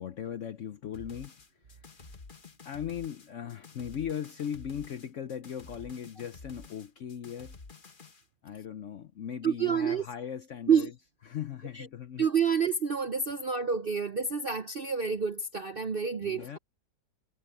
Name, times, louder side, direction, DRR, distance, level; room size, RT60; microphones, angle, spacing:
voice 1, 0.0-2.1 2.6-7.6 8.4-10.9 11.3-12.3 16.2-16.6, left 9 dB, 60° left, 0.8 m, -38 dB
sound 1, 0.9-8.2, left 4 dB, 30° left, 1.3 m, -50 dB
voice 2, 9.4-10.0 10.7-10.9 11.7-11.9 12.2-16.6, right 6 dB, 55° right, 0.6 m, -28 dB
omnidirectional pair, 1.9 m